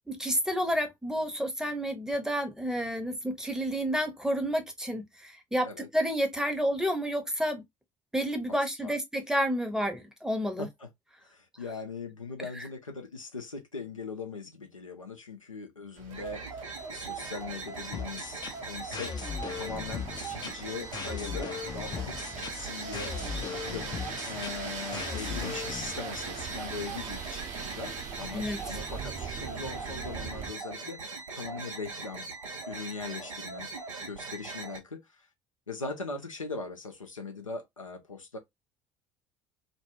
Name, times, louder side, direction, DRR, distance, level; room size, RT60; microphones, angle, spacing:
voice 1, 0.1-7.6 8.1-10.7 28.3-28.8, equal, 5° right, 0.7 m, -30 dB
voice 2, 8.5-8.9 10.6-10.9 11.2-23.1 23.7-23.9 24.2-32.3 32.7-33.7 34.0-35.3 35.7-38.4, left 4 dB, 90° left, 0.4 m, -40 dB
sound 1, 16.0-30.5, right 6 dB, 50° right, 0.8 m, -42 dB
sound 2, 16.1-34.8, right 4 dB, 80° right, 0.5 m, -40 dB
sound 3, 17.9-25.9, left 7 dB, 25° left, 0.4 m, -38 dB
2.2 x 2.2 x 3.0 m
figure-of-eight pair, 55°, 16 cm